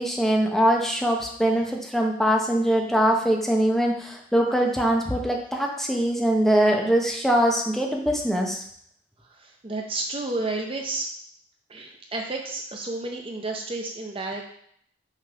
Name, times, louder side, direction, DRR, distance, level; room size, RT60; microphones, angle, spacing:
voice 1, 0.0-8.6, right 1 dB, ahead, 0 dB, 0.8 m, -22 dB
voice 2, 9.3-11.1 11.7-14.4, right 2 dB, 30° right, 2 dB, 0.6 m, -31 dB
6.4 x 3.7 x 5.0 m, 0.67 s
head